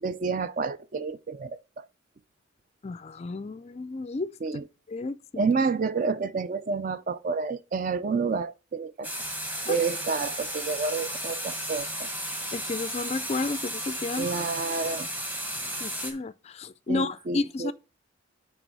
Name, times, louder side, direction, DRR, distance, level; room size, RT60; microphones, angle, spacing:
voice 1, 0.0-1.9 4.4-4.6 5.4-9.1 9.7-12.1 14.2-15.1 16.9-17.7, right 4 dB, 40° right, 0.4 m, -29 dB
voice 2, 2.8-4.3 4.9-5.2 9.7-9.8 12.5-14.3 15.8-17.7, left 3 dB, 30° left, 0.3 m, -31 dB
sound 1, 9.0-16.1, right 1 dB, 10° right, 1.3 m, -34 dB
9.1 x 3.4 x 6.1 m
head